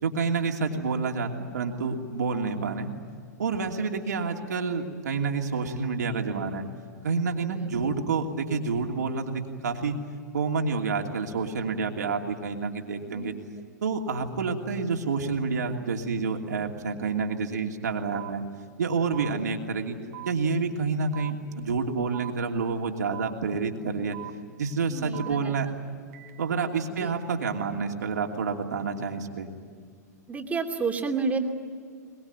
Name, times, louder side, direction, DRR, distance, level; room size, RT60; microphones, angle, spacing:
voice 1, 0.0-2.9 3.4-6.7 7.0-10.0 10.3-13.3 13.8-18.4 18.8-20.0 20.2-24.2 24.6-25.7 26.4-29.5, right 4 dB, 80° right, 2 dB, 2.9 m, -28 dB
voice 2, 13.1-13.5 19.3-19.5 24.9-25.5 27.0-27.1 30.3-31.4, right 4 dB, 15° right, 3 dB, 2.8 m, -31 dB
sound 1, 18.1-18.3 19.1-19.3 20.1-20.3 21.1-21.3 22.1-22.3 23.1-23.3 24.1-24.3 25.1-25.3 26.1-26.3, right 18 dB, 60° right, 1.7 m, -40 dB
22.5 x 22.0 x 9.5 m, 2.1 s
hypercardioid pair, 115°, 9 cm